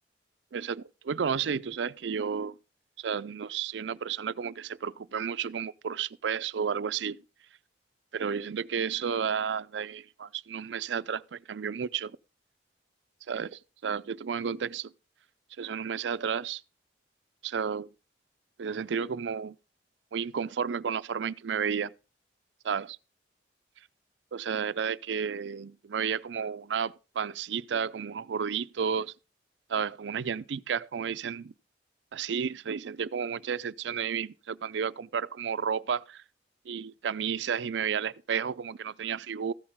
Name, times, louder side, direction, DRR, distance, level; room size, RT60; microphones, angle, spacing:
voice 1, 0.5-2.6 3.0-7.2 8.1-12.1 13.3-14.9 15.6-16.6 17.4-17.9 18.6-19.6 20.1-21.9 22.6-23.0 24.3-29.1 29.7-31.5 32.1-36.2 36.7-39.5, right 7 dB, 80° right, 0.4 m, -32 dB
14.5 x 8.7 x 3.6 m
head